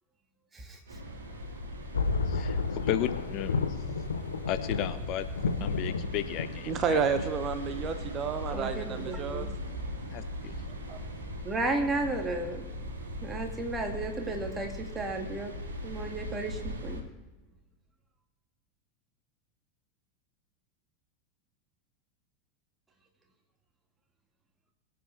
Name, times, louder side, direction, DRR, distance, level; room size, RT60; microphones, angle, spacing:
sound 1, 0.9-17.0, equal, 70° right, 2.2 m, -39 dB
sound 2, 1.9-7.3, left 4 dB, 70° left, 0.9 m, -32 dB
voice 1, 2.3-3.8 4.5-5.3 5.6-7.0 10.1-10.6, left 13 dB, 45° left, 12 dB, 0.6 m, -34 dB
voice 2, 6.7-9.5 10.9-11.0, right 6 dB, 35° right, 9 dB, 0.8 m, -30 dB
voice 3, 8.5-9.5 11.4-12.6 13.2-15.5 15.8-17.0, right 2 dB, 15° right, 2 dB, 2.1 m, -33 dB
22.0 x 7.7 x 3.4 m, 1.2 s
figure-of-eight pair, 85°, 0 cm